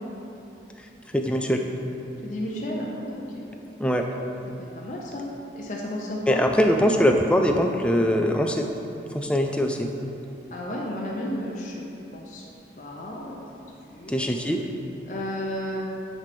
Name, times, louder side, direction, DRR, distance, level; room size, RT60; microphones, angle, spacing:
voice 1, 1.1-1.6 3.8-4.1 6.3-8.7 9.1-9.9 14.1-14.6, equal, 5° left, 3 dB, 0.4 m, -22 dB
voice 2, 2.2-3.5 4.6-6.4 10.5-11.7 12.1-12.4 12.8-13.4 13.9-14.3 15.0-15.8, left 1 dB, 45° left, -3 dB, 0.7 m, -33 dB
9.1 x 3.3 x 5.9 m, 2.8 s
head